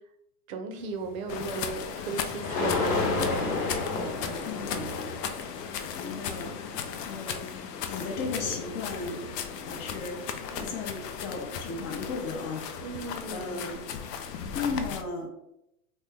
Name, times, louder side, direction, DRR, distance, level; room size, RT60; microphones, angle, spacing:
voice 1, 0.5-3.2 10.5-10.7 12.8-13.6, right 4 dB, 55° right, 6 dB, 0.7 m, -37 dB
sound 1, 1.0-1.2 2.4-10.3, left 3 dB, 60° left, 0.9 m, -33 dB
sound 2, 1.3-15.0, left 7 dB, 80° left, 0.6 m, -37 dB
voice 2, 4.4-5.0 5.5-7.6 7.9-12.7 13.3-13.8 14.5-15.3, left 4 dB, 30° left, 2 dB, 0.6 m, -36 dB
3.0 x 2.2 x 3.4 m, 0.82 s
hypercardioid pair, 125°, 47 cm